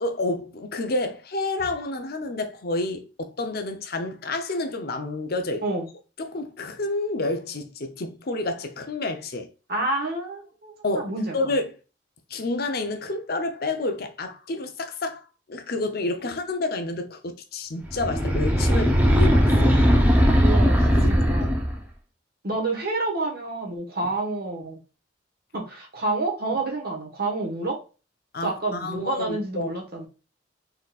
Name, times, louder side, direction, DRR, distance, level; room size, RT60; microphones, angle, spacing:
voice 1, 0.0-5.6 6.3-9.5 10.8-11.7 12.3-15.2 15.5-19.8 20.9-21.5 28.3-29.7, left 2 dB, 55° left, 0.7 m, -29 dB
voice 2, 9.7-11.3 20.4-21.6 22.4-24.8 25.5-27.8 28.4-30.1, right 2 dB, 55° right, 1.3 m, -29 dB
sound 1, 17.9-21.8, equal, 10° right, 0.7 m, -19 dB
4.2 x 3.9 x 2.4 m
head